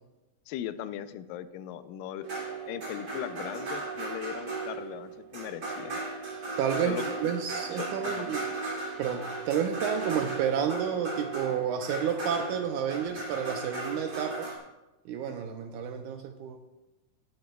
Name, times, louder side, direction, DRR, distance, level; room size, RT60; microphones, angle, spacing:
voice 1, 0.5-2.3 2.7-6.0 6.8-7.0 7.7-8.3, left 11 dB, 85° left, 12 dB, 2.2 m, -38 dB
sound 1, 2.2-14.6, right 3 dB, 30° right, 2.3 m, -36 dB
voice 2, 6.6-8.5 9.0-14.5 15.1-16.6, right 8 dB, 80° right, 6 dB, 1.8 m, -30 dB
18.0 x 9.1 x 2.3 m, 1.0 s
omnidirectional pair, 3.9 m